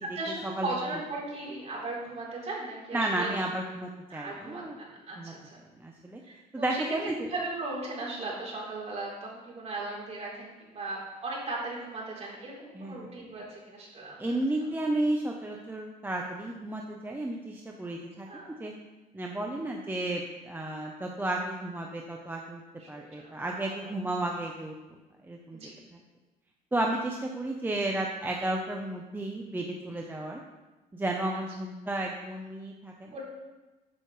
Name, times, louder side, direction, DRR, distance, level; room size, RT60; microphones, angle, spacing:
voice 1, 0.0-3.3 4.1-5.6 6.2-7.0 7.3-14.4 18.3-18.6 22.8-23.6 25.5-25.7 29.9-30.0 33.1-33.2, right 2 dB, 40° right, -4 dB, 4.2 m, -37 dB
voice 2, 2.9-4.8 5.2-5.3 5.8-6.2 6.5-7.3 12.7-13.1 14.2-18.7 19.1-22.6 22.9-24.7 25.3-25.6 26.7-30.4 30.9-33.1, right 1 dB, 10° right, 0 dB, 1.0 m, -32 dB
13.5 x 8.4 x 3.4 m, 1.1 s
cardioid pair, 110°, 17 cm